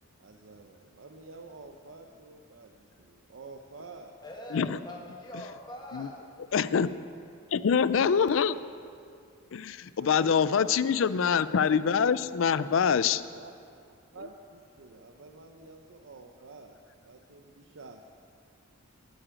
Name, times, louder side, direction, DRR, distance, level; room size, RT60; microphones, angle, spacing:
voice 1, 0.2-4.1 8.0-8.6 10.0-11.4 11.7-11.8 13.4-13.5 14.1-16.7 17.0-18.0, right 3 dB, 60° right, 3 dB, 0.7 m, -48 dB
voice 2, 4.2-6.2, left 1 dB, 20° left, 0 dB, 1.5 m, -43 dB
voice 3, 6.5-6.9 7.5-8.5 9.5-13.2, left 6 dB, 60° left, 15 dB, 0.4 m, -25 dB
9.1 x 8.8 x 8.9 m, 2.3 s
head